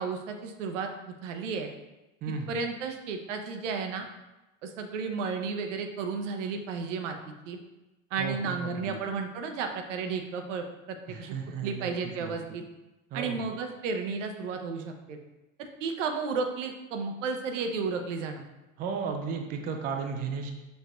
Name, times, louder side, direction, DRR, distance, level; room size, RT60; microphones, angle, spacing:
voice 1, 0.0-1.7 2.5-4.1 4.6-7.2 7.5-7.6 8.1-11.3 11.6-12.6 13.1-15.2 15.6-18.4, right 5 dB, 65° right, 5 dB, 0.6 m, -33 dB
voice 2, 2.2-2.6 8.2-9.0 11.1-12.4 13.1-13.5 18.8-20.5, right 5 dB, 25° right, 4 dB, 0.4 m, -34 dB
5.9 x 2.6 x 2.4 m, 1.0 s
figure-of-eight pair, 70°, 39 cm